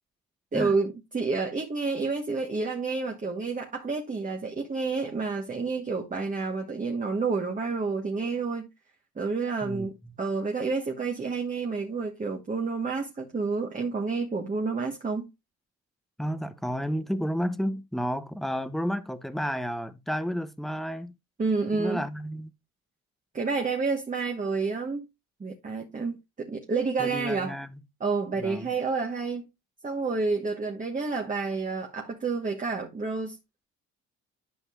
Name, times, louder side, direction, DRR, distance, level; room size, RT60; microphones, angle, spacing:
voice 1, 0.5-8.7 9.2-15.3 21.4-22.1 23.3-25.1 25.4-27.6 28.0-29.5 29.8-33.4, right 4 dB, 25° right, 1.2 m, -29 dB
voice 2, 16.2-21.1 21.7-22.5 27.0-27.8 28.4-28.7, equal, ahead, 0.8 m, -31 dB
11.5 x 5.3 x 2.4 m
cardioid pair, 90°, 30 cm